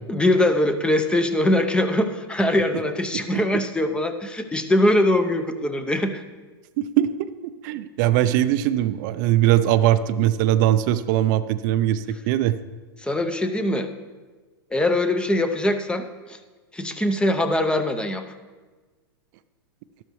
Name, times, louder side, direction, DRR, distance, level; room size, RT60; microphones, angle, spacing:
voice 1, 0.1-6.2 13.0-13.9 14.7-16.4 16.7-18.2, left 1 dB, 5° left, 8 dB, 0.6 m, -22 dB
voice 2, 6.8-7.1 7.4-12.6, right 12 dB, 50° right, 12 dB, 0.5 m, -21 dB
12.5 x 12.0 x 3.1 m, 1.3 s
hypercardioid pair, 125°, 13 cm